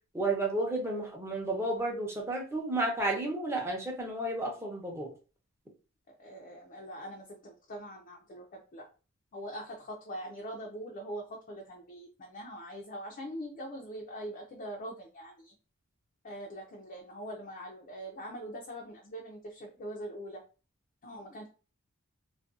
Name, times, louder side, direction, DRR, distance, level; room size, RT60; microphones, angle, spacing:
voice 1, 0.1-5.1, right 2 dB, 10° right, -1 dB, 0.6 m, -32 dB
voice 2, 6.1-8.8 9.3-15.5 16.2-20.4 21.0-21.5, equal, 40° left, 0 dB, 0.4 m, -43 dB
2.5 x 2.2 x 2.4 m, 0.35 s
head